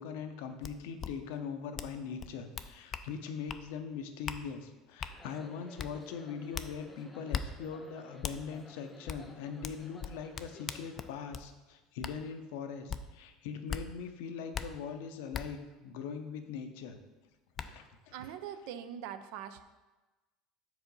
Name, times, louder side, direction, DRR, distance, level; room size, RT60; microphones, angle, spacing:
voice 1, 0.0-17.0 17.6-18.1, left 6 dB, 80° left, 7 dB, 0.6 m, -41 dB
sound 1, 0.6-0.7 1.0-1.1 1.8-1.9 2.2-3.1 3.5-3.6 4.3-4.4 5.0-5.1 5.8-5.9 6.5-6.7 7.3-7.5 8.2-8.4 9.1-9.2 9.6-11.5 12.0-12.2 12.9-13.0 13.7-13.8 14.5-14.7 15.3-15.4 16.9-17.0 17.6-17.7, left 7 dB, 35° left, 0.3 m, -38 dB
sound 2, 5.1-11.1, left 2 dB, 10° left, 0.7 m, -55 dB
voice 2, 18.1-19.6, right 9 dB, 75° right, 11 dB, 0.4 m, -42 dB
4.8 x 3.8 x 5.3 m, 1.2 s
supercardioid pair, 125°, 0 cm